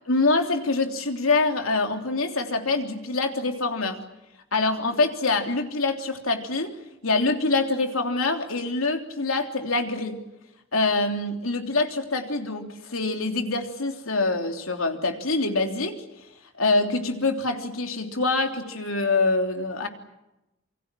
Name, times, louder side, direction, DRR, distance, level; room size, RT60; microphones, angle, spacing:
voice 1, 0.1-4.0 4.5-6.8 7.0-10.2 10.7-16.0 16.6-19.9, left 3 dB, 90° left, 4 dB, 3.3 m, -25 dB
28.0 x 24.5 x 7.5 m, 0.94 s
head